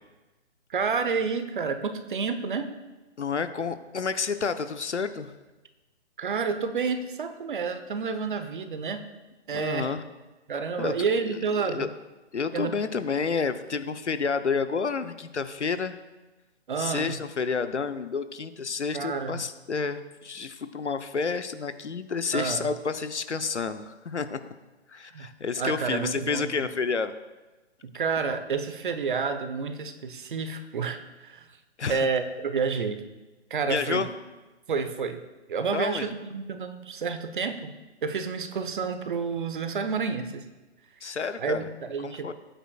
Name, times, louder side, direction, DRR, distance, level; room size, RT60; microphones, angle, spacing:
voice 1, 0.7-2.7 6.2-9.1 9.5-9.9 10.5-11.9 12.5-12.8 16.7-17.2 18.9-19.4 22.3-22.7 25.1-25.3 25.6-26.7 27.8-31.5 31.9-33.0 33.5-34.0 34.7-35.2 35.5-37.7 38.0-40.4 41.4-42.3, right 5 dB, 45° right, 9 dB, 0.9 m, -29 dB
voice 2, 3.2-5.3 9.5-10.0 10.8-10.9 11.3-11.4 11.6-11.9 12.3-16.0 16.8-24.4 24.9-27.1 31.8-32.1 33.7-34.1 35.7-36.1 41.0-41.7 42.0-42.3, left 5 dB, 80° left, 10 dB, 0.8 m, -30 dB
18.0 x 9.0 x 2.4 m, 1.1 s
figure-of-eight pair, 140°, 34 cm